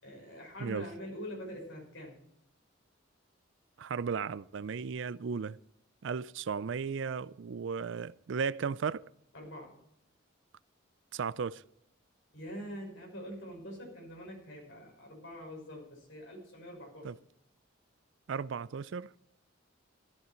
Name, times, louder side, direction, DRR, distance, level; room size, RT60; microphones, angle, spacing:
voice 1, 0.0-2.1 9.3-9.8 12.3-17.1, equal, 75° left, 5.8 m, -44 dB
voice 2, 3.8-5.6 6.0-9.0 11.1-11.6 17.0-17.2 18.3-19.1, right 6 dB, 65° right, 0.4 m, -35 dB
13.5 x 12.5 x 4.4 m
head